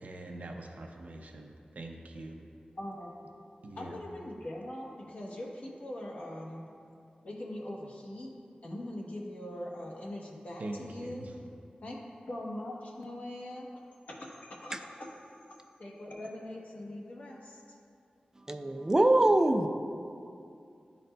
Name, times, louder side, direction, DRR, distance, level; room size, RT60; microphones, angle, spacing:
voice 1, 0.0-2.4 3.6-3.9 10.6-11.3, right 2 dB, 70° right, 2 dB, 0.6 m, -43 dB
voice 2, 2.8-3.1 3.8-6.7 7.2-8.3 8.6-11.5 11.8-12.0 12.3-13.7 14.1-15.0 15.8-17.8, left 1 dB, 65° left, -3 dB, 1.0 m, -41 dB
voice 3, 18.5-19.7, right 1 dB, 20° right, 6 dB, 0.3 m, -23 dB
11.0 x 4.0 x 2.2 m, 2.5 s
wide cardioid pair, 85°, 3 cm